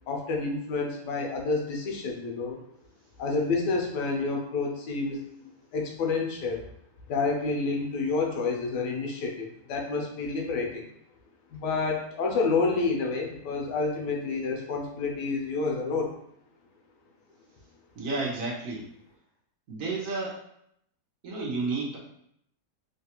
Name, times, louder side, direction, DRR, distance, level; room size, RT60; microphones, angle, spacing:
voice 1, 0.1-2.6 3.2-6.6 7.1-10.9 11.5-16.1, left 4 dB, 85° left, 1 dB, 1.3 m, -29 dB
voice 2, 18.0-18.8 19.7-20.4 21.2-22.0, right 3 dB, 60° right, -4 dB, 1.0 m, -31 dB
3.2 x 2.3 x 2.9 m, 0.72 s
omnidirectional pair, 1.8 m